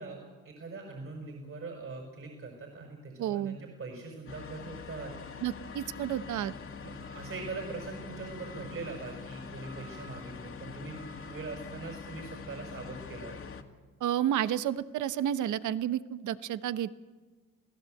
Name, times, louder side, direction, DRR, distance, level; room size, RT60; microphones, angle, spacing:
voice 1, 0.0-5.1 6.8-13.4, right 3 dB, 45° right, 2 dB, 5.7 m, -42 dB
voice 2, 3.2-3.6 5.4-6.5 14.0-16.9, right 11 dB, 75° right, 14 dB, 1.0 m, -31 dB
sound 1, 4.3-13.6, left 5 dB, 45° left, 2.3 m, -44 dB
28.0 x 17.0 x 7.9 m, 1.3 s
cardioid pair, 90°, 30 cm